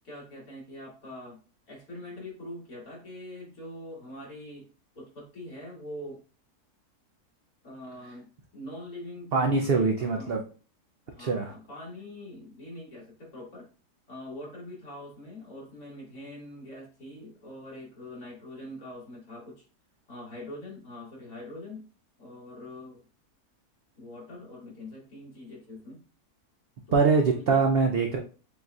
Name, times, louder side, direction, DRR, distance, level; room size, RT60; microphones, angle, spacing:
voice 1, 0.0-1.4 1.7-4.7 4.9-6.2 7.6-10.4 11.1-13.7 14.1-19.6 20.1-21.9 22.2-23.0 24.0-26.0 26.9-27.6, left 1 dB, 75° left, -6 dB, 2.7 m, -43 dB
voice 2, 9.3-10.4 11.2-11.5 26.9-28.2, right 4 dB, 85° right, 3 dB, 0.5 m, -23 dB
6.8 x 2.6 x 2.3 m, 0.37 s
omnidirectional pair, 1.6 m